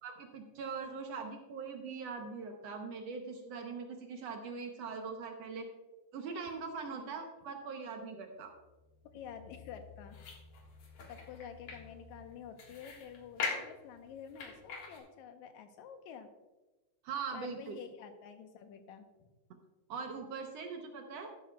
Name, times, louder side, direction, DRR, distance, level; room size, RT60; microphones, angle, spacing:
voice 1, 0.0-5.7 6.1-8.5 17.0-17.8 19.9-21.3, right 5 dB, 70° right, 4 dB, 1.9 m, -41 dB
sound 1, 8.5-15.0, left 5 dB, 60° left, 2.7 m, -44 dB
voice 2, 9.1-10.2 11.1-16.3 17.3-19.1, left 7 dB, 85° left, 7 dB, 2.2 m, -49 dB
12.5 x 11.5 x 2.3 m, 1.1 s
omnidirectional pair, 3.3 m